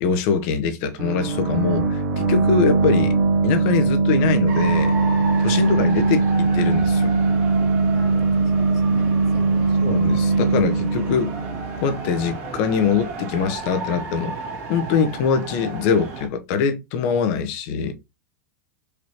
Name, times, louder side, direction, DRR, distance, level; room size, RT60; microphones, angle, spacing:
voice 1, 0.0-3.2 3.4-5.0 5.4-7.2 9.8-11.4 11.8-14.3 14.7-17.9, left 6 dB, 55° left, 0.9 m, -23 dB
sound 1, 1.0-12.5, right 3 dB, 75° right, 1.5 m, -20 dB
sound 2, 4.5-16.3, right 3 dB, 60° right, 1.9 m, -33 dB
voice 2, 7.9-9.9, left 7 dB, 35° left, 1.3 m, -43 dB
5.1 x 3.0 x 2.9 m
hypercardioid pair, 100°, 10 cm